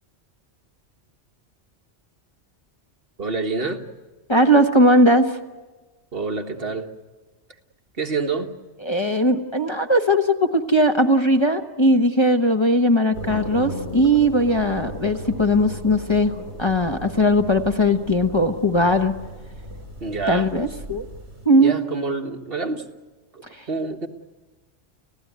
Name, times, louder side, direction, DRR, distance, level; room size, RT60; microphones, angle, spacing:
voice 1, 3.2-3.8 6.1-6.9 8.0-8.5 20.0-20.6 21.6-22.8 23.3-24.1, right 4 dB, 55° right, 4 dB, 1.8 m, -27 dB
voice 2, 4.3-5.3 8.8-16.3 16.6-19.1 20.3-21.0 21.4-21.7, equal, 25° left, 4 dB, 1.0 m, -19 dB
sound 1, 13.1-21.5, equal, 75° right, 6.0 m, -36 dB
30.0 x 16.0 x 9.4 m, 1.2 s
omnidirectional pair, 1.2 m